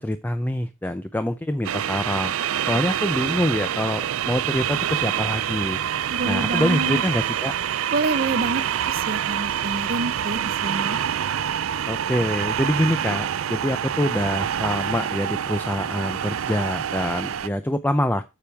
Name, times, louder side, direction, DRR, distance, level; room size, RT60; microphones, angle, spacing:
voice 1, 0.0-2.3 2.6-5.8 6.3-7.5 11.9-18.2, left 1 dB, 10° left, 0.5 m, -25 dB
sound 1, 1.6-17.5, right 9 dB, 85° right, 0.4 m, -26 dB
voice 2, 6.1-7.0 7.9-8.6 8.9-11.0, right 2 dB, 45° right, 0.7 m, -27 dB
9.2 x 7.0 x 3.4 m
head